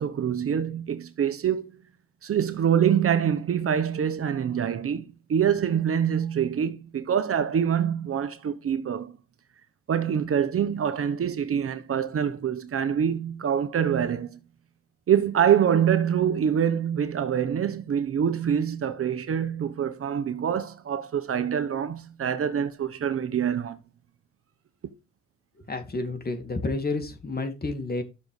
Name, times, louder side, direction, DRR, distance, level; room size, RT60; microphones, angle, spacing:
voice 1, 0.0-1.7 2.2-9.2 9.9-14.4 15.1-23.8, right 8 dB, 50° right, 1.0 m, -25 dB
voice 2, 25.6-28.0, left 3 dB, 30° left, 2.7 m, -30 dB
13.0 x 6.5 x 3.2 m
cardioid pair, 90°, 30 cm